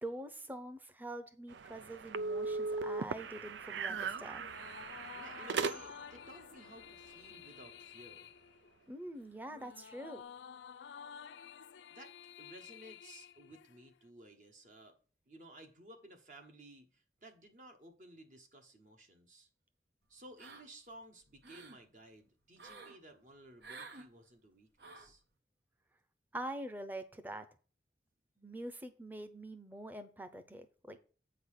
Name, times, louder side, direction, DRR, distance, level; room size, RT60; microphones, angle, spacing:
voice 1, 0.0-4.5 8.9-10.2 26.3-27.4 28.4-31.0, right 1 dB, 10° right, 9 dB, 0.8 m, -45 dB
sound 1, 1.5-6.2, right 4 dB, 90° right, 0.5 m, -38 dB
sound 2, 4.3-14.1, left 8 dB, 85° left, 0.4 m, -52 dB
voice 2, 5.2-8.3 11.9-15.0 15.3-19.5 20.1-25.2, right 1 dB, 45° right, 4 dB, 1.2 m, -56 dB
sound 3, 20.4-20.9 21.3-21.8 22.6-23.0 23.6-24.1 24.8-25.2, right 3 dB, 70° right, 1.1 m, -51 dB
8.4 x 4.0 x 6.5 m, 0.38 s
head